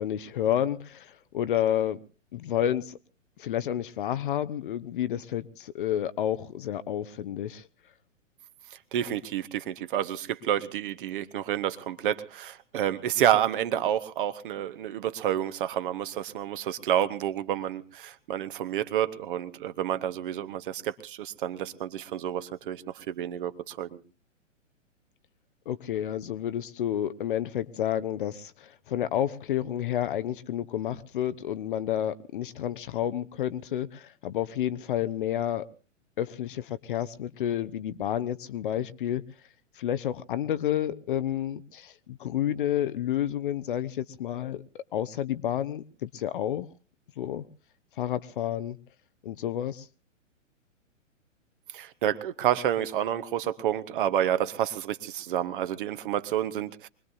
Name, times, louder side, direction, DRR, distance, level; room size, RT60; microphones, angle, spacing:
voice 1, 0.0-2.0 2.3-3.0 3.4-7.7 25.7-35.7 36.2-39.2 39.8-46.7 47.2-47.4 48.0-48.8 49.2-49.9, left 11 dB, 45° left, 14 dB, 0.8 m, -30 dB
voice 2, 8.7-24.0 51.7-56.9, right 11 dB, 40° right, 12 dB, 1.2 m, -29 dB
24.5 x 20.5 x 2.6 m, 0.35 s
figure-of-eight pair, 115°, 38 cm